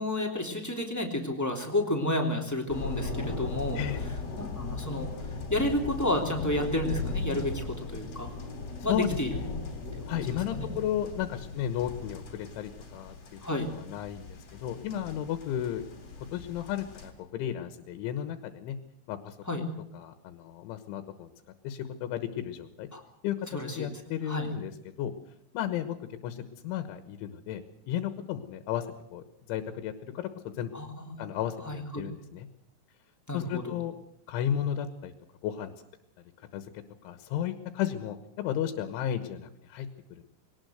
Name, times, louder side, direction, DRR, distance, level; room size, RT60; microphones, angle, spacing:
voice 1, 0.0-3.8 4.4-5.1 5.5-8.3 8.8-9.3 10.1-10.2 10.5-10.7 13.4-13.7 19.5-19.6 22.9-23.0 23.5-23.9 24.3-24.5 30.7-31.1 31.6-32.0 33.3-33.7, left 1 dB, 5° left, 1 dB, 1.8 m, -31 dB
sound 1, 2.7-17.1, left 3 dB, 35° left, 4.0 m, -38 dB
voice 2, 10.1-13.4 13.7-15.8 16.3-18.8 19.1-19.7 19.9-21.3 21.7-22.9 23.2-23.5 23.8-24.7 25.0-25.1 25.5-26.0 26.2-27.6 27.9-28.9 29.1-30.7 31.2-32.5 33.3-34.0 34.3-35.1 35.4-35.7 36.5-36.7 37.0-40.2, left 10 dB, 75° left, 10 dB, 3.5 m, -34 dB
22.0 x 18.5 x 7.9 m, 0.76 s
omnidirectional pair, 5.6 m